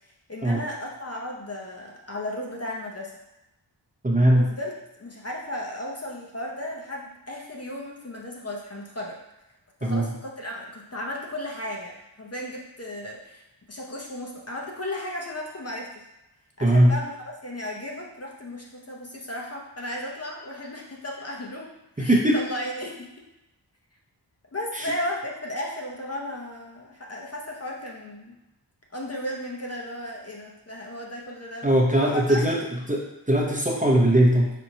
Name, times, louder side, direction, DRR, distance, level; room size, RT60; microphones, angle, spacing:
voice 1, 0.3-3.1 4.3-4.7 5.0-9.2 9.8-13.4 13.7-16.0 16.6-17.1 17.4-23.2 24.5-28.4 28.9-31.7 32.0-32.7, left 1 dB, 35° left, -2 dB, 0.7 m, -35 dB
voice 2, 4.0-4.5 9.8-10.1 16.6-16.9 22.0-22.4 24.7-24.9 31.6-32.6 32.9-34.5, right 1 dB, 15° right, -2 dB, 0.7 m, -20 dB
4.4 x 4.1 x 2.8 m, 0.94 s
wide cardioid pair, 85°, 45 cm